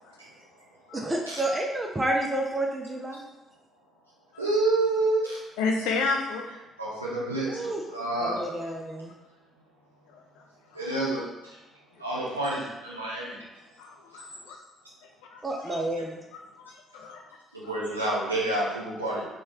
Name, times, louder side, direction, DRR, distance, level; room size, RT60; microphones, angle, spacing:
voice 1, 0.9-3.3 7.5-7.8 8.2-9.1 15.4-16.2, right 1 dB, 20° right, 0 dB, 0.4 m, -30 dB
voice 2, 4.4-5.4 6.8-8.4 10.7-11.2 12.0-13.4 17.5-19.3, right 2 dB, 90° right, -7 dB, 0.6 m, -28 dB
voice 3, 5.6-6.5 10.1-10.4 11.9-12.0 13.8-14.6 15.3-15.7 16.3-17.2, left 4 dB, 65° left, 2 dB, 0.4 m, -32 dB
3.1 x 2.3 x 3.4 m, 1.0 s
figure-of-eight pair, 45°, 0 cm